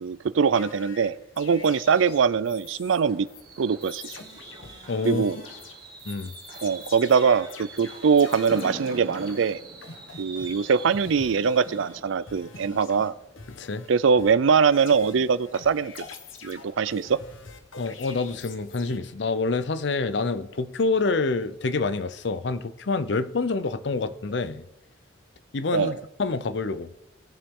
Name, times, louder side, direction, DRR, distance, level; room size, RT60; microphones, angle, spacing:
voice 1, 0.0-3.3 3.6-4.2 5.0-5.4 6.6-9.6 10.2-13.1 13.9-16.0 16.4-17.2 25.7-25.9, right 6 dB, 75° right, 0.4 m, -22 dB
sound 1, 0.5-3.0 3.3-3.4 3.8-12.0 12.3-13.9 14.2-19.0, left 4 dB, 80° left, 1.1 m, -45 dB
Fireworks, 2.4-14.1 14.5-14.7 15.0-15.1, right 2 dB, 50° right, 2.1 m, -44 dB
voice 2, 4.9-5.2 6.1-6.3 13.5-13.9 17.8-24.7 25.5-26.9, left 3 dB, 60° left, 0.6 m, -27 dB
19.0 x 6.9 x 3.7 m
head